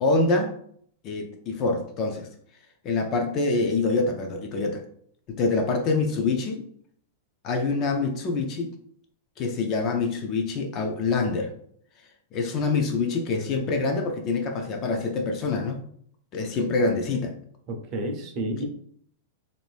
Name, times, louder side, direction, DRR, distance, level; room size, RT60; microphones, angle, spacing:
voice 1, 0.0-0.5 1.0-2.3 2.8-4.8 5.3-6.6 7.4-8.7 9.4-11.5 12.3-15.8 16.3-17.3, left 3 dB, 25° left, 3 dB, 0.4 m, -25 dB
voice 2, 17.7-18.6, right 1 dB, 30° right, 3 dB, 0.5 m, -30 dB
2.6 x 2.5 x 3.3 m, 0.64 s
supercardioid pair, 170°, 0 cm